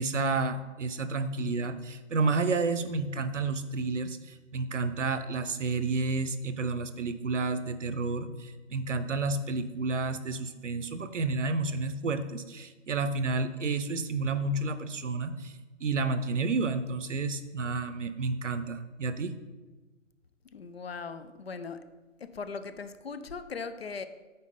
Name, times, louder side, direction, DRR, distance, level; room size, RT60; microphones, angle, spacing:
voice 1, 0.0-15.5 15.8-19.3, right 3 dB, 70° right, 11 dB, 0.8 m, -30 dB
voice 2, 20.5-21.8 22.2-24.0, left 5 dB, 50° left, 11 dB, 0.6 m, -39 dB
8.9 x 4.0 x 5.4 m, 1.3 s
figure-of-eight pair, 155°, 38 cm